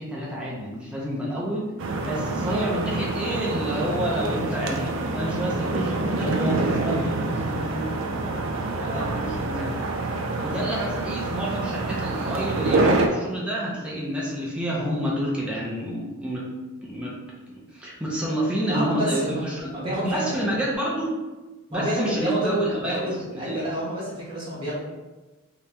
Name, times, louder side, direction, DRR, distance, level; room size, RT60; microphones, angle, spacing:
voice 1, 0.0-1.7 2.0-8.1 8.7-9.7 10.4-16.5 16.8-17.2 17.5-19.7 20.0-21.2 21.7-23.6, right 1 dB, 5° right, -6 dB, 0.6 m, -29 dB
sound 1, 1.8-13.1, right 2 dB, 60° right, 0.4 m, -26 dB
voice 2, 8.8-9.1 18.7-19.4 19.7-20.5 21.7-24.8, equal, 25° right, -8 dB, 1.4 m, -29 dB
2.9 x 2.9 x 3.3 m, 1.2 s
head